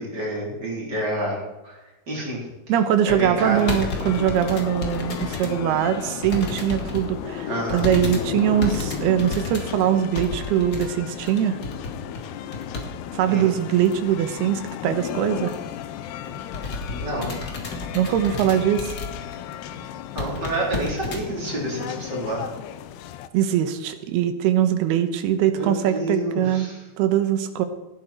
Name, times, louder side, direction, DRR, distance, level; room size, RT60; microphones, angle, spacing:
voice 1, 0.0-1.4 1.6-1.8 2.1-2.4 3.0-3.8 7.5-7.9 13.3-13.5 16.9-17.3 20.1-22.5 25.5-26.8, right 1 dB, 25° right, -3 dB, 4.2 m, -28 dB
voice 2, 2.7-11.6 13.1-15.5 17.9-19.0 23.3-26.7 27.0-27.7, right 10 dB, 80° right, 9 dB, 3.1 m, -22 dB
sound 1, 3.1-5.5 5.9-7.1 7.7-12.9 13.2-13.3 13.8-14.2 14.6-14.7 14.9-15.1 15.5-15.7 16.1-19.4 19.7-19.8 20.1-21.2 21.8-21.9, left 2 dB, 35° left, 1.8 m, -32 dB
sound 2, 3.4-23.3, left 10 dB, 85° left, 2.8 m, -34 dB
17.5 x 12.0 x 4.5 m, 1.0 s
omnidirectional pair, 4.6 m